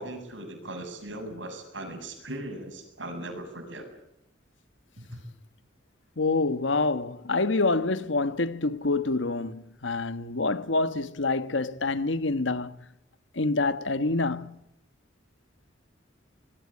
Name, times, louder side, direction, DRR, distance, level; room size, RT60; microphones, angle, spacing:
voice 1, 0.0-3.9 5.0-5.2, right 1 dB, 85° right, 7.6 m, -39 dB
voice 2, 6.2-12.8 13.3-14.6, left 3 dB, 80° left, 1.3 m, -27 dB
25.0 x 20.5 x 8.6 m
head